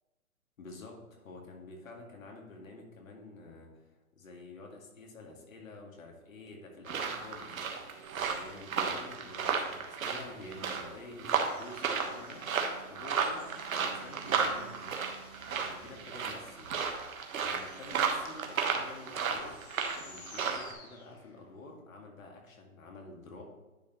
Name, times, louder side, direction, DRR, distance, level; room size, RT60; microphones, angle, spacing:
voice 1, 0.6-3.9 4.1-7.8 8.2-12.5 12.9-14.9 15.5-16.8 17.4-19.6 20.1-23.4, left 2 dB, 65° left, 1 dB, 2.1 m, -49 dB
sound 1, 6.9-20.7, right 6 dB, 70° right, 1.3 m, -34 dB
sound 2, 11.3-21.6, left 4 dB, 45° left, 2.0 m, -56 dB
10.0 x 5.0 x 3.0 m, 1.1 s
hypercardioid pair, 155°, 43 cm